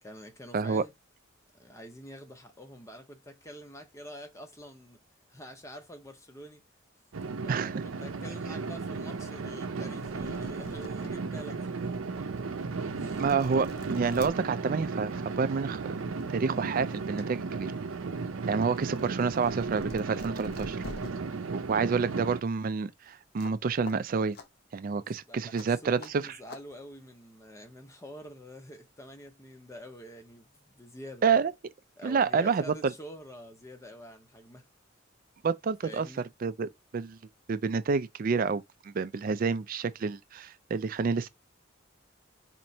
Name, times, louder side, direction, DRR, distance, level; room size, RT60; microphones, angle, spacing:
voice 1, 0.0-0.9 1.6-5.0 5.3-6.6 7.4-11.9 12.9-13.2 25.0-31.3 32.0-34.6 35.8-36.3, equal, 15° left, 0.7 m, -47 dB
sound 1, 7.1-22.4, right 4 dB, 85° right, 0.6 m, -35 dB
sound 2, 10.0-11.1 11.7-11.8 12.6-12.7 13.0-14.3 15.6-15.8 16.2-17.3 17.6-21.1 23.4-23.6 23.9-24.0 24.3-24.5 25.5-25.7 26.0-26.1 26.5-26.6, left 2 dB, 50° left, 0.7 m, -46 dB
voice 2, 13.2-15.8 16.3-17.7 18.5-20.8 21.5-24.4 24.7-26.4 31.2-31.5 32.0-32.9 35.4-36.1 36.4-37.2 37.5-41.3, right 5 dB, 45° right, 0.4 m, -28 dB
4.3 x 3.0 x 2.7 m
head